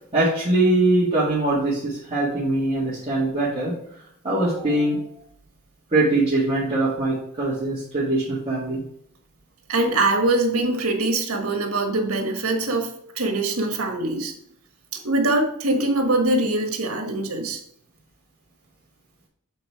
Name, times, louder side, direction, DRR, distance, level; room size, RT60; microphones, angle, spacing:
voice 1, 0.1-3.7 4.2-5.0 5.9-8.8, right 2 dB, 25° right, -9 dB, 2.0 m, -22 dB
voice 2, 9.7-14.3 15.0-17.6, right 2 dB, 80° right, 4 dB, 1.5 m, -23 dB
7.6 x 4.0 x 4.7 m, 0.70 s
head